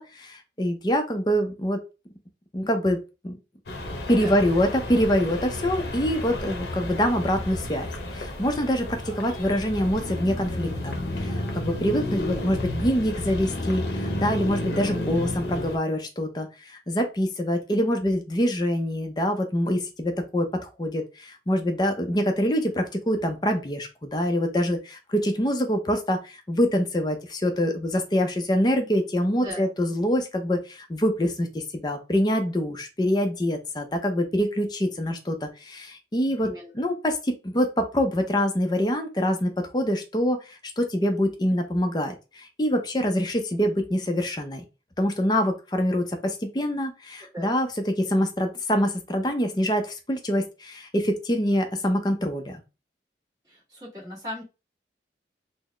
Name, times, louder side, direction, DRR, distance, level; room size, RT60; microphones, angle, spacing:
voice 1, 0.0-1.8 2.5-3.4 4.1-10.9 11.2-36.5 36.7-44.6 45.0-52.6, equal, 25° left, 5 dB, 0.5 m, -25 dB
sound 1, 3.7-15.8, left 1 dB, 70° left, 0.8 m, -32 dB
voice 2, 36.4-36.7 47.3-47.5 53.5-54.4, equal, 20° right, -7 dB, 1.7 m, -38 dB
3.9 x 2.0 x 3.1 m, 0.29 s
head